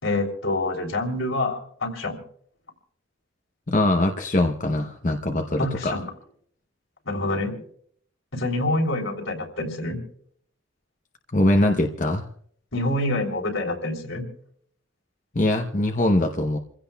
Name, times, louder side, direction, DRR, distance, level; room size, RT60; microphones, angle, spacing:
voice 1, 0.0-2.2 5.6-6.0 7.0-7.6 8.3-10.0 12.7-14.2, left 2 dB, 75° left, 1 dB, 3.4 m, -26 dB
voice 2, 3.7-5.9 11.3-12.3 15.3-16.6, left 1 dB, 40° left, 3 dB, 0.8 m, -22 dB
28.5 x 16.0 x 2.3 m, 0.64 s
head